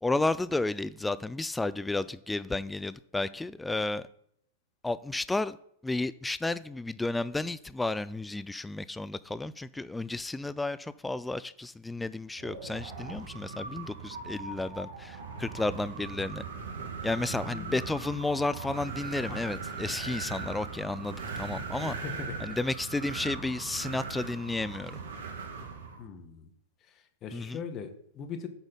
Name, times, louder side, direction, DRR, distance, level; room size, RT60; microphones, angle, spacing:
voice 1, 0.0-4.0 4.8-5.6 5.8-16.4 17.0-21.9 22.4-25.0 27.3-27.6, left 2 dB, 10° left, 16 dB, 0.3 m, -32 dB
Wind, 12.4-26.0, right 5 dB, 75° right, 1.7 m, -39 dB
voice 2, 17.5-18.0 19.3-19.6 21.7-22.5 26.0-26.5 26.8-28.5, left 6 dB, 35° left, 7 dB, 1.2 m, -41 dB
8.2 x 4.1 x 5.3 m, 0.68 s
hypercardioid pair, 105°, 0 cm